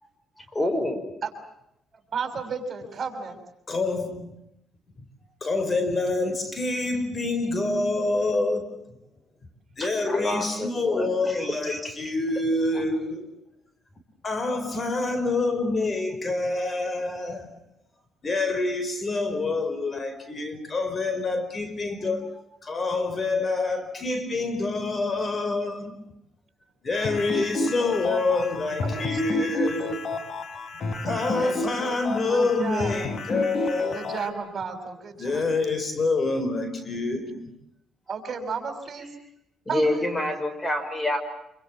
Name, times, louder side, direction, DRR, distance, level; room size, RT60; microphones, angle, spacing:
voice 1, 0.5-1.0 9.8-11.9 39.7-41.2, left 1 dB, 20° left, 5.5 m, -28 dB
voice 2, 2.1-3.3 28.8-29.4 31.0-31.6 32.3-32.9 33.9-35.4 38.1-39.1 39.7-40.0, right 5 dB, 45° right, 6.4 m, -33 dB
voice 3, 3.7-4.3 5.4-9.0 9.8-13.3 14.2-17.5 18.2-22.3 22.6-26.0 26.8-30.2 31.0-34.0 35.2-37.5, left 3 dB, 35° left, 4.8 m, -27 dB
sound 1, 26.9-34.3, left 2 dB, 55° left, 3.6 m, -31 dB
27.0 x 25.0 x 7.5 m
cardioid pair, 90°, 0 cm